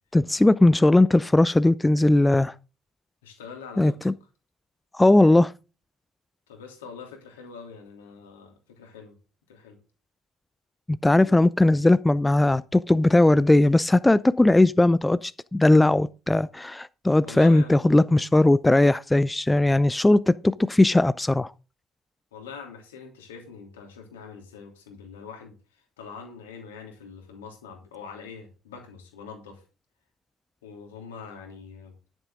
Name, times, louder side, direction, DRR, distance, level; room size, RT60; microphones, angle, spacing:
voice 1, 0.1-2.5 3.8-4.1 4.9-5.5 11.0-21.5, left 2 dB, 10° left, 0.5 m, -19 dB
voice 2, 3.2-4.0 6.5-9.1 9.5-9.8 11.2-11.4 17.1-17.7 22.3-29.6 30.6-31.9, left 6 dB, 75° left, 2.9 m, -44 dB
11.0 x 9.1 x 3.7 m
figure-of-eight pair, 55°, 0 cm